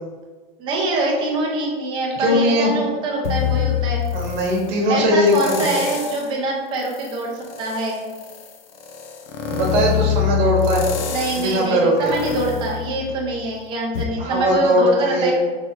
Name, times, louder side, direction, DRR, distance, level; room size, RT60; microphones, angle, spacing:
voice 1, 0.6-4.0 4.9-7.3 7.6-8.1 11.0-15.3, right 2 dB, 15° right, -3 dB, 0.6 m, -24 dB
voice 2, 2.2-2.7 4.1-5.6 9.5-10.8 11.4-12.1 14.2-15.3, equal, 50° right, -1 dB, 1.1 m, -19 dB
sound 1, 3.2-4.7 5.3-6.3 6.8-13.5 13.9-14.0, left 9 dB, 75° left, 0.6 m, -26 dB
3.4 x 3.3 x 2.9 m, 1.4 s
supercardioid pair, 165°, 29 cm